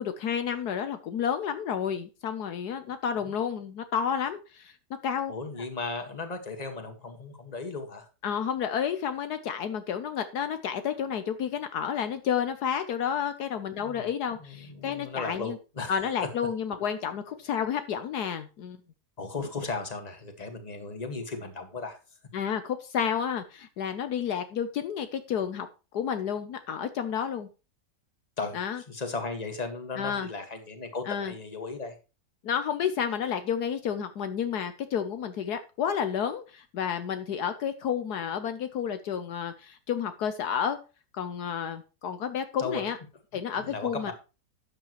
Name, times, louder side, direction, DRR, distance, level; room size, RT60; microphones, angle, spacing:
voice 1, 0.0-4.7 5.0-5.3 5.6-5.7 8.2-15.6 15.9-18.8 22.3-25.7 25.9-27.5 28.5-28.8 30.0-30.3 31.1-31.3 32.4-40.8 41.1-43.0 43.3-44.1, left 8 dB, 70° left, 10 dB, 1.4 m, -30 dB
voice 2, 5.3-8.1 13.8-14.1 14.4-16.0 19.2-22.0 28.4-28.6 28.9-32.0 42.6-42.8 43.6-44.1, left 3 dB, 25° left, 6 dB, 1.8 m, -36 dB
12.0 x 8.7 x 3.1 m, 0.31 s
omnidirectional pair, 1.8 m